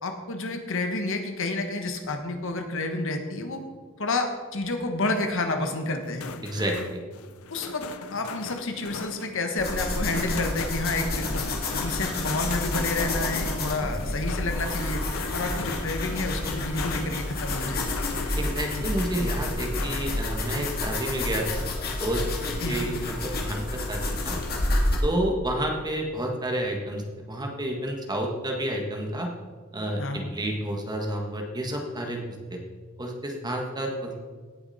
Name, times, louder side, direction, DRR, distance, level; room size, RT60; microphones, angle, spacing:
voice 1, 0.0-3.6 4.0-6.3 7.5-7.8 8.1-11.3 11.7-15.0 15.3-17.8 18.7-18.9 22.6-22.8 30.0-30.2, left 2 dB, 65° left, 5 dB, 1.4 m, -29 dB
sound 1, 6.0-18.7 19.1-20.3, left 5 dB, 80° left, 0.6 m, -40 dB
voice 2, 6.4-7.0 13.8-14.0 15.5-15.6 18.3-21.6 22.0-22.3 22.6-24.4 25.0-27.0 27.3-29.3 29.7-32.2 32.5-32.6 33.0-34.2, right 1 dB, 20° right, 1 dB, 1.5 m, -30 dB
sound 2, 9.6-25.0, left 2 dB, 45° left, 1.9 m, -29 dB
17.5 x 6.9 x 4.2 m, 1.5 s
head